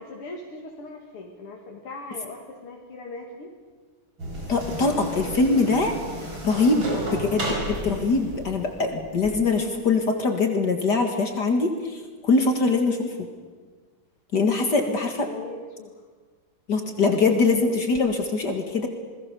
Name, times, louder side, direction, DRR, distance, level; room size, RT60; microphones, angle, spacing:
voice 1, 0.0-3.5 6.9-7.1 14.8-16.0, left 3 dB, 90° left, -1 dB, 3.1 m, -40 dB
sound 1, 4.2-9.3, right 1 dB, 60° right, 5.9 m, -33 dB
voice 2, 4.5-6.0 6.4-6.9 7.2-7.5 7.8-13.1 14.3-15.3 16.7-18.9, left 3 dB, 50° left, 5 dB, 2.4 m, -22 dB
28.0 x 20.5 x 6.9 m, 1.5 s
omnidirectional pair, 2.4 m